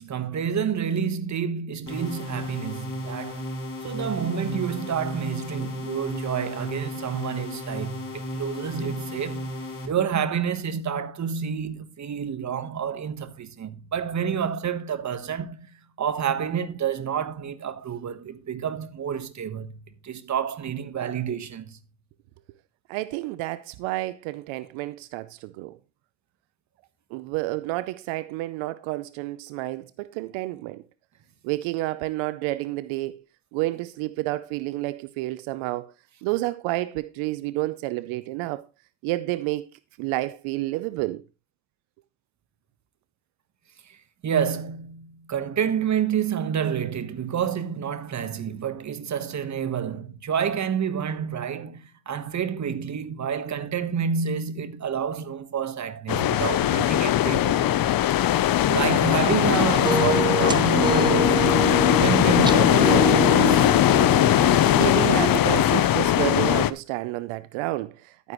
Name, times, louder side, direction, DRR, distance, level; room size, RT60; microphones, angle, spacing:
voice 1, 0.0-3.5 3.8-9.6 9.9-15.7 16.0-21.8 43.9-44.0 44.2-57.8 58.6-63.7, right 7 dB, 35° right, 1.3 m, -29 dB
sound 1, 1.9-9.9, equal, 25° left, 6.4 m, -34 dB
voice 2, 22.9-25.8 27.1-30.8 31.4-33.2 33.5-35.9 36.2-38.6 39.0-39.7 40.0-41.2 56.3-56.5 64.8-68.3, right 18 dB, 75° right, 0.7 m, -30 dB
sound 2, 56.1-66.7, left 12 dB, 45° left, 0.8 m, -20 dB
sound 3, 59.5-65.3, right 3 dB, 10° right, 0.6 m, -27 dB
11.5 x 9.5 x 3.1 m
supercardioid pair, 75°, 48 cm